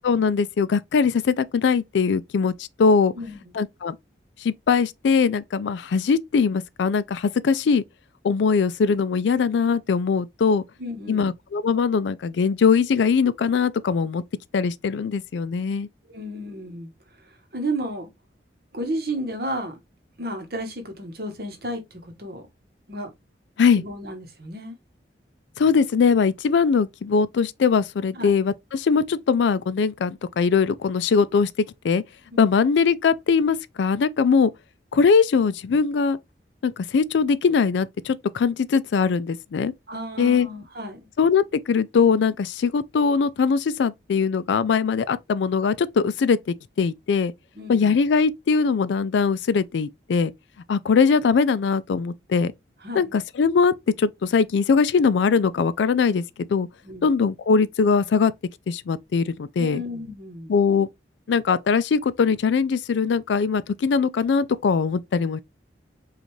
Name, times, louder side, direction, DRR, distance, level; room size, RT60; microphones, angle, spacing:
voice 1, 0.0-3.1 3.5-4.0 4.4-7.8 8.2-10.6 11.1-14.2 14.5-15.9 23.6-23.8 25.6-31.5 31.8-32.0 32.4-34.5 34.9-36.2 36.6-39.7 40.2-40.5 41.2-47.3 47.7-50.3 50.7-52.5 52.9-56.7 57.0-58.3 58.7-59.8 60.5-60.9 61.3-65.4, left 5 dB, 80° left, 0.4 m, -21 dB
voice 2, 3.1-3.5 10.8-11.3 16.1-16.9 17.3-18.1 18.7-19.8 20.2-22.4 22.9-23.1 23.8-24.7 28.1-28.3 32.3-32.5 39.9-41.1 47.5-48.0 52.8-53.1 56.8-57.1 59.6-60.5, right 1 dB, 55° right, 1.1 m, -33 dB
5.1 x 2.4 x 3.1 m
head